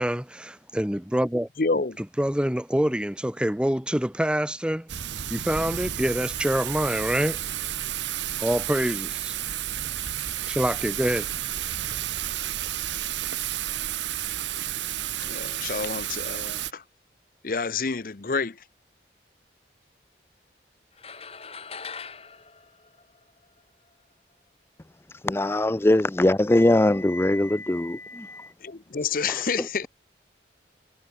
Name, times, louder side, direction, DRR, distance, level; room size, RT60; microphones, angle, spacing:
voice 1, 0.0-1.5 2.2-4.9 5.3-7.4 8.4-9.3 10.5-11.3, equal, 5° right, 0.8 m, -26 dB
voice 2, 1.6-2.0 15.2-16.8 17.4-18.6 28.6-29.9, left 4 dB, 50° left, 0.7 m, -28 dB
Thunder / Rain, 4.9-16.7, right 12 dB, 85° right, 0.9 m, -31 dB
sound 1, 21.0-23.6, left 5 dB, 35° left, 4.5 m, -41 dB
voice 3, 25.2-28.5 29.3-29.4, left 1 dB, 15° left, 0.4 m, -22 dB
head